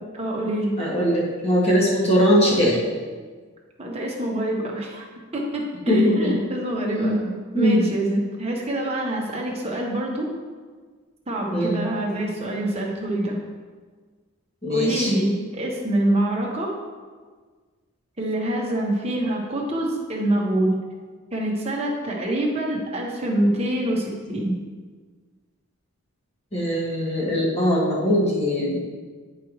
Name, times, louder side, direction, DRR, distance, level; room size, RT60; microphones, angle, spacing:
voice 1, 0.1-0.7 3.8-5.1 5.3-7.2 7.5-10.3 11.3-13.4 14.7-16.7 18.2-20.8 21.3-24.6, right 1 dB, 30° right, -1 dB, 1.1 m, -25 dB
voice 2, 0.8-2.8 5.9-6.3 6.8-7.8 11.5-11.8 14.6-15.1 26.5-28.8, equal, 30° left, -6 dB, 1.8 m, -21 dB
10.5 x 4.8 x 3.1 m, 1.5 s
head